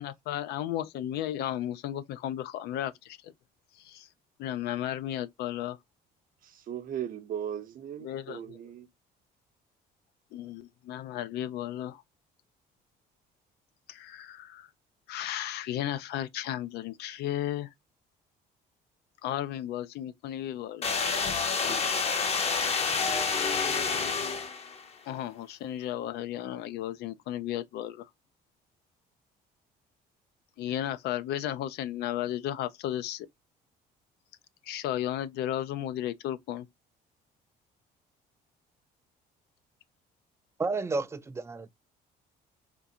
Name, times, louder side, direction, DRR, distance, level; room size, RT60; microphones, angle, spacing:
voice 1, 0.0-3.3 3.7-4.1 4.4-5.8 8.0-8.4 10.3-12.0 13.9-14.7 15.1-17.7 19.2-20.9 25.1-28.1 30.6-33.3 34.6-36.7, left 12 dB, 75° left, 0.4 m, -34 dB
voice 2, 6.4-8.9, right 9 dB, 55° right, 0.7 m, -37 dB
sound 1, 20.8-24.8, left 5 dB, 40° left, 0.7 m, -28 dB
voice 3, 40.6-41.7, right 3 dB, 15° right, 0.4 m, -31 dB
3.6 x 2.4 x 2.7 m
cardioid pair, 110°, 17 cm